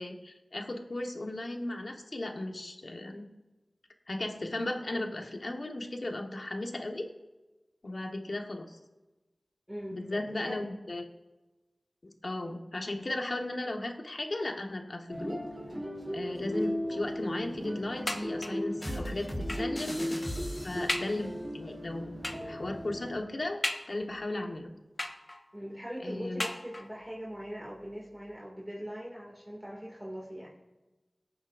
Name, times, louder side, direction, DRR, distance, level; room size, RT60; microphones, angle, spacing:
voice 1, 0.0-3.3 4.1-7.1 7.8-8.8 9.9-11.1 12.0-15.4 16.1-20.2 20.6-22.1 22.4-23.6 23.9-24.7 26.0-26.4, left 2 dB, 60° left, 3 dB, 1.4 m, -36 dB
voice 2, 9.7-10.7 24.3-24.6 25.5-30.5, equal, 15° right, -4 dB, 2.5 m, -41 dB
sound 1, 15.1-23.2, equal, 50° right, 4.1 m, -37 dB
sound 2, 18.1-18.7 19.5-19.8 20.3-20.4 20.9-21.3 22.2-22.6 23.6-24.3 25.0-25.6 26.4-27.1 27.9-28.0 28.3-28.4, left 1 dB, 40° left, 1.0 m, -36 dB
sound 3, 18.8-21.1, equal, 15° left, 2.9 m, -38 dB
21.5 x 8.5 x 2.6 m, 1.1 s
wide cardioid pair, 55°, 0 cm